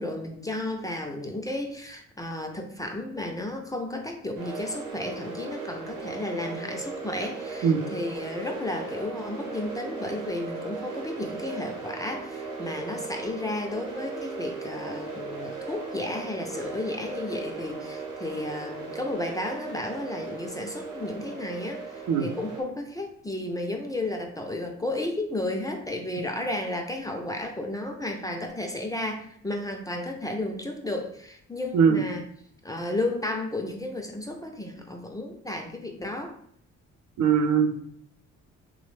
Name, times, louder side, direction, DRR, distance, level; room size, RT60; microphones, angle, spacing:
voice 1, 0.0-32.3 32.6-36.4, left 1 dB, 10° left, 2 dB, 0.3 m, -33 dB
sound 1, 4.4-22.6, right 4 dB, 90° right, 0.9 m, -37 dB
voice 2, 37.2-37.8, right 7 dB, 75° right, 6 dB, 0.5 m, -21 dB
3.1 x 2.0 x 3.1 m, 0.66 s
cardioid pair, 90°, 30 cm